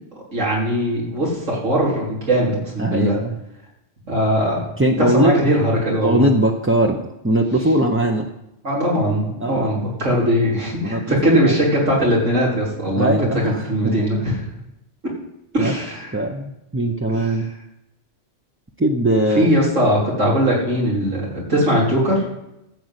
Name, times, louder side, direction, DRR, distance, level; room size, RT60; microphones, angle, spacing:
voice 1, 0.3-3.2 4.1-4.6 5.0-6.3 8.6-13.1 13.4-14.4 15.5-16.2 17.1-17.4 19.3-22.2, equal, 85° right, -4 dB, 4.1 m, -20 dB
voice 2, 2.8-3.4 4.8-5.4 6.0-8.3 9.4-9.7 10.8-11.6 12.9-14.0 15.6-15.7 16.1-17.5 18.8-19.5, right 1 dB, 15° right, 0 dB, 0.6 m, -20 dB
13.5 x 5.3 x 8.1 m, 0.87 s
omnidirectional pair, 1.3 m